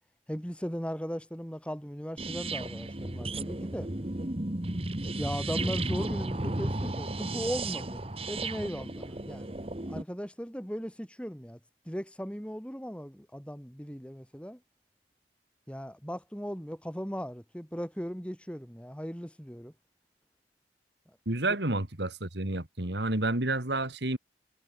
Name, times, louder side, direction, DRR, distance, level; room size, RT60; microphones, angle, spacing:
voice 1, 0.3-3.9 5.2-9.5 9.9-11.6 11.8-14.6 15.7-19.7, equal, 5° left, 5.1 m, -37 dB
sound 1, 2.2-10.0, right 2 dB, 30° right, 1.4 m, -34 dB
voice 2, 21.3-24.2, right 2 dB, 70° right, 2.8 m, -30 dB
head